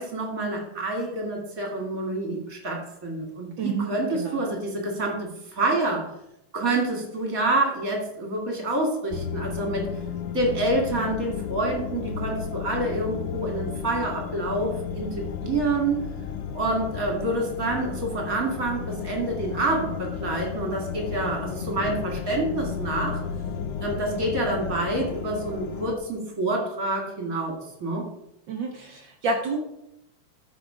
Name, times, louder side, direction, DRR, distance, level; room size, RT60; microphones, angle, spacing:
voice 1, 0.0-6.1 6.5-9.9 10.3-16.1 16.5-23.2 23.8-28.0, right 2 dB, 30° right, 1 dB, 2.2 m, -27 dB
voice 2, 3.6-3.9 4.2-4.4 28.5-29.6, right 3 dB, 80° right, 2 dB, 1.0 m, -29 dB
sound 1, 9.1-25.9, left 7 dB, 80° left, 1.2 m, -33 dB
13.0 x 5.0 x 5.0 m, 0.83 s
omnidirectional pair, 3.4 m